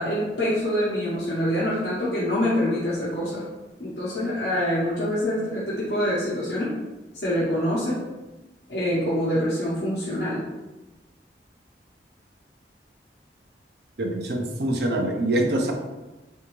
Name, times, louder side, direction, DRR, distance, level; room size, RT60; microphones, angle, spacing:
voice 1, 0.0-3.4 3.8-6.8 7.2-8.0 8.7-10.4, equal, 70° left, -9 dB, 0.9 m, -25 dB
voice 2, 14.0-15.7, right 1 dB, 60° right, 2 dB, 0.5 m, -24 dB
3.4 x 2.7 x 3.0 m, 1.1 s
head